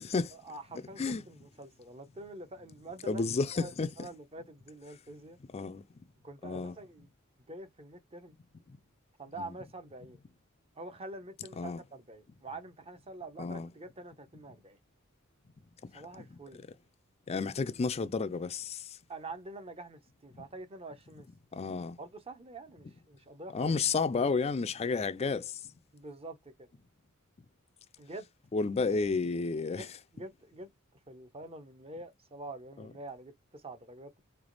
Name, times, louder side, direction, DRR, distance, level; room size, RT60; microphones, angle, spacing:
voice 1, 0.3-3.3 3.5-5.4 6.2-7.1 7.5-8.3 9.2-10.2 10.8-14.8 15.9-16.7 19.1-21.3 21.5-21.6 22.0-23.8 25.9-26.7 28.0-28.3 29.8-30.7 31.1-34.2, right 2 dB, 25° right, 0.7 m, -46 dB
voice 2, 3.1-4.1 5.5-5.8 6.4-6.7 8.7-8.8 9.4-9.5 11.6-11.8 13.4-13.7 15.9-16.0 17.3-19.0 21.5-22.0 23.5-25.6 28.5-29.9 32.8-32.9, left 4 dB, 30° left, 0.4 m, -31 dB
3.4 x 2.9 x 3.9 m
head